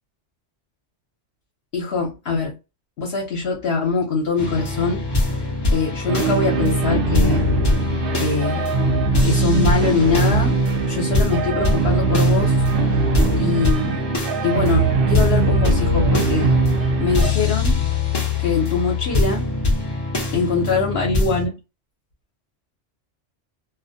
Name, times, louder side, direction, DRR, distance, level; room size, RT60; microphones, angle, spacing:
voice 1, 1.7-2.5 3.0-5.0 5.7-7.4 8.2-8.7 9.2-12.6 13.4-14.0 14.4-16.5 17.0-17.8 18.4-19.4 20.3-21.6, left 4 dB, 60° left, 0.9 m, -23 dB
sound 1, 4.4-21.5, left 3 dB, 30° left, 0.5 m, -24 dB
sound 2, 6.1-17.3, right 4 dB, 60° right, 0.6 m, -21 dB
2.3 x 2.1 x 2.6 m
omnidirectional pair, 1.2 m